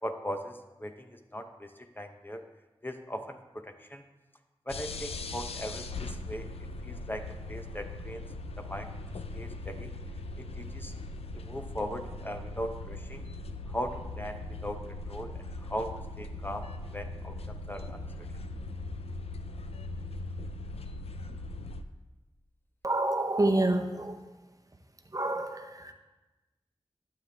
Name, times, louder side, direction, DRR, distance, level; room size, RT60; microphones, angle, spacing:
voice 1, 0.0-1.7 2.0-2.4 2.8-4.0 4.7-6.5 6.8-8.2 8.6-8.9 9.3-9.9 10.6-10.9 11.4-13.2 13.7-16.7 16.9-18.0, equal, 20° left, 6 dB, 0.7 m, -39 dB
sound 1, 4.7-21.8, left 2 dB, 90° left, 0.4 m, -40 dB
voice 2, 22.8-24.2 25.1-25.9, right 2 dB, 35° right, 5 dB, 0.8 m, -28 dB
12.0 x 7.5 x 3.4 m, 1.1 s
cardioid pair, 45°, 10 cm